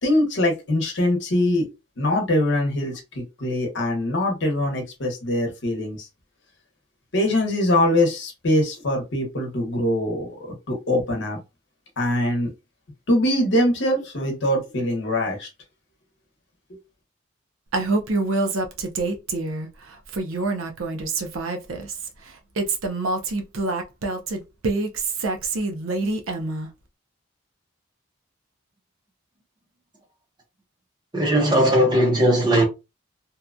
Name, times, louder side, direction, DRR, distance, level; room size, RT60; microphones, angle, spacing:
voice 1, 0.0-1.6 2.0-6.0 7.1-10.3 10.7-11.4 12.0-12.5 13.1-15.5, left 1 dB, 60° left, 0.9 m, -22 dB
Female speech woman speaking, 17.7-19.7 20.1-22.1 22.6-26.7, right 3 dB, 85° right, 0.6 m, -26 dB
voice 2, 31.1-32.6, right 1 dB, 20° right, 0.7 m, -18 dB
2.8 x 2.2 x 2.4 m
head